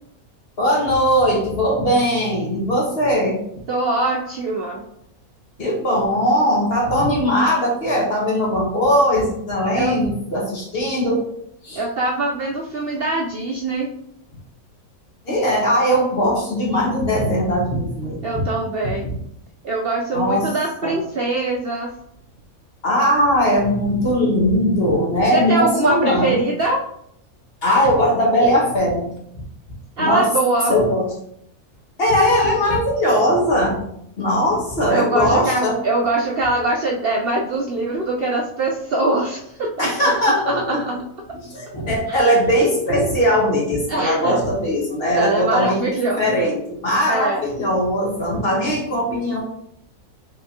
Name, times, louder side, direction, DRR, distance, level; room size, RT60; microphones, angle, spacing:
voice 1, 0.6-3.4 5.6-11.2 11.6-11.8 15.2-18.4 20.1-20.5 20.8-21.0 22.8-26.7 27.6-29.0 30.0-30.3 30.7-31.1 32.0-33.8 34.2-35.8 39.8-40.8 41.3-45.8 46.2-49.4, equal, 45° left, -3 dB, 1.4 m, -19 dB
voice 2, 3.7-4.8 9.7-10.0 11.7-13.9 18.2-19.1 19.6-21.9 25.3-26.8 30.0-30.8 34.9-41.0 42.1-42.2 43.9-44.4 45.1-46.4 47.1-47.4, right 2 dB, 85° right, 0 dB, 0.5 m, -23 dB
4.9 x 3.4 x 2.7 m, 0.73 s
omnidirectional pair, 1.6 m